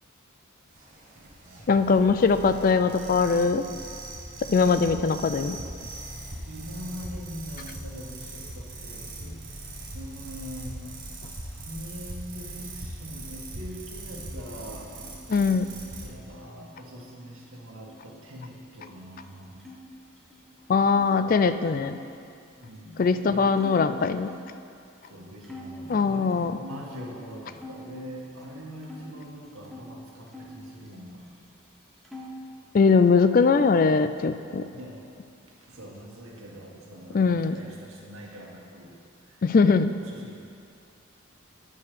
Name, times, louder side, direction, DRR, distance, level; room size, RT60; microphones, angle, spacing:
sound 1, 0.7-16.1, right 2 dB, 40° right, 1.4 m, -40 dB
voice 1, 1.7-3.7 4.4-5.6 15.3-15.7 20.7-22.0 23.0-24.3 25.9-26.6 32.7-34.7 37.1-37.6 39.4-39.9, left 4 dB, 40° left, 11 dB, 0.3 m, -21 dB
voice 2, 6.5-15.0 15.4-15.6 16.0-19.6 22.6-23.6 25.1-31.3 34.8-35.1 35.5-39.0 39.3-39.4 40.1-40.4, equal, 85° right, -2 dB, 1.5 m, -43 dB
sound 2, 14.1-19.8 20.1-21.1 21.7-24.6 25.0-25.2 25.4-27.9 28.2-29.9 30.3-31.4 31.6-32.5, left 1 dB, ahead, 0.9 m, -48 dB
9.3 x 5.5 x 6.8 m, 2.4 s
head